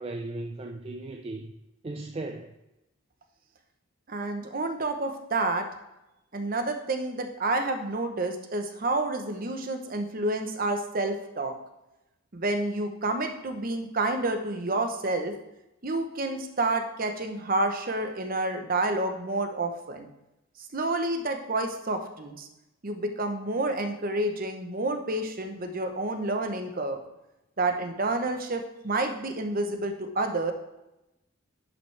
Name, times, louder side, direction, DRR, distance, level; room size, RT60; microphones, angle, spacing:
voice 1, 0.0-1.5 1.8-2.6, right 2 dB, 30° right, 3 dB, 0.4 m, -36 dB
voice 2, 4.1-5.6 6.3-11.5 12.3-15.3 15.8-20.1 20.7-22.5 22.8-27.0 27.6-30.5, right 2 dB, 45° right, 5 dB, 0.9 m, -29 dB
11.0 x 5.6 x 3.3 m, 0.94 s
head